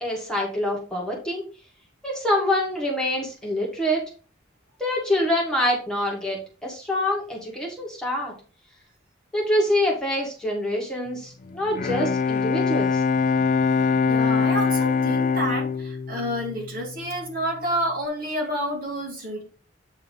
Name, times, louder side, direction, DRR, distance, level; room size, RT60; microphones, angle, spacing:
voice 1, 0.0-1.4 2.0-4.0 4.8-8.3 9.3-13.0, left 1 dB, 5° left, 1.8 m, -25 dB
Bowed string instrument, 11.5-17.3, left 5 dB, 40° left, 0.4 m, -23 dB
voice 2, 14.1-19.4, equal, 45° right, 2.5 m, -29 dB
9.1 x 3.3 x 5.3 m
head